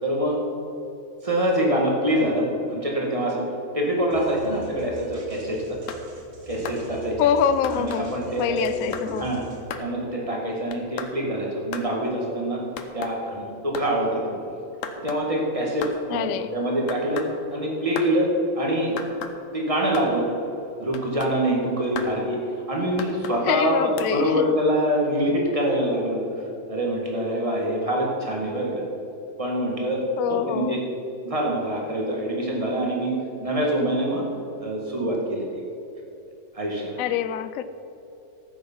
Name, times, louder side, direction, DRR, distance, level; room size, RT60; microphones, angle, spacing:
voice 1, 0.0-0.4 1.2-3.4 3.7-5.8 6.5-7.3 7.7-8.6 8.8-9.4 9.8-12.6 12.9-14.4 15.0-17.2 17.5-18.3 18.6-18.9 19.5-20.3 20.8-22.4 22.7-26.2 26.7-28.8 29.4-30.8 31.2-34.2 34.6-35.6 36.5-37.0, right 1 dB, 15° right, 2.0 m, -25 dB
sound 1, 4.1-9.6, right 1 dB, 60° right, 2.5 m, -44 dB
sound 2, 5.7-6.0 6.6-6.8 7.6-8.0 8.6-9.1 9.7-9.9 10.7-11.1 11.7-11.9 12.8-13.2 13.7-13.9 14.8-15.2 15.8-16.0 16.9-17.3 18.0-18.1 19.0-19.4 19.9-20.1 20.9-21.4 21.9-22.1 23.0-23.4 24.0-24.1, left 6 dB, 55° left, 1.0 m, -35 dB
voice 2, 7.2-9.3 16.1-16.5 23.5-24.5 30.2-30.8 37.0-37.6, left 9 dB, 80° left, 0.7 m, -25 dB
14.0 x 7.9 x 5.6 m
omnidirectional pair, 2.1 m